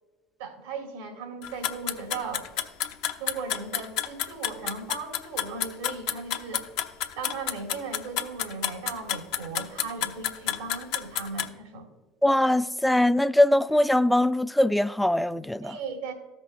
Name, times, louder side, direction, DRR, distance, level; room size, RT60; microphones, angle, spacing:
voice 1, 0.4-2.5 3.2-6.7 7.2-11.9 15.6-16.1, right 4 dB, 85° right, 2.1 m, -37 dB
sound 1, 1.4-11.5, left 10 dB, 70° left, 0.7 m, -29 dB
voice 2, 12.2-15.8, left 1 dB, 5° left, 0.4 m, -22 dB
14.0 x 6.2 x 2.5 m
hypercardioid pair, 75°, 0 cm